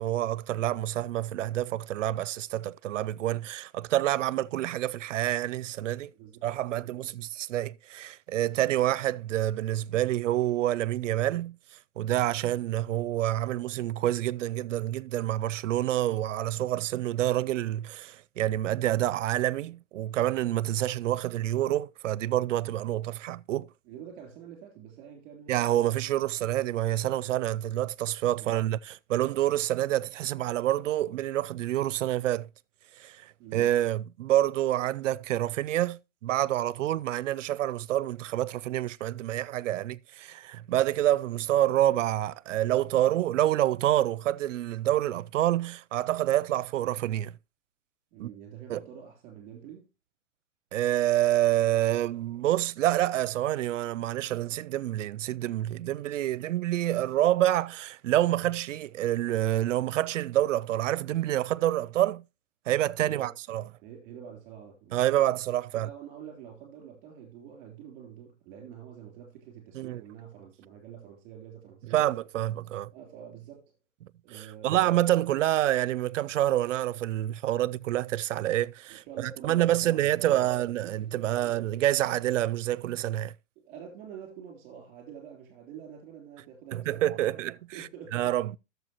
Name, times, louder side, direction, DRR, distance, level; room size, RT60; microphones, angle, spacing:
voice 1, 0.0-6.1 6.4-11.6 12.0-23.7 25.5-32.5 33.0-47.3 48.2-48.3 48.7-48.8 50.7-62.2 62.7-63.6 64.9-65.9 69.7-70.0 71.9-72.9 74.3-83.3 86.7-88.6, right 13 dB, 70° right, 0.6 m, -27 dB
voice 2, 23.8-25.5 28.4-28.6 33.4-33.7 48.1-49.8 63.0-63.3 63.8-65.0 65.7-72.1 72.9-73.6 74.2-74.9 78.9-80.6 81.0-81.7 83.6-87.4 87.7-88.3, right 8 dB, 25° right, 3.3 m, -46 dB
12.0 x 6.9 x 2.9 m
hypercardioid pair, 165°, 38 cm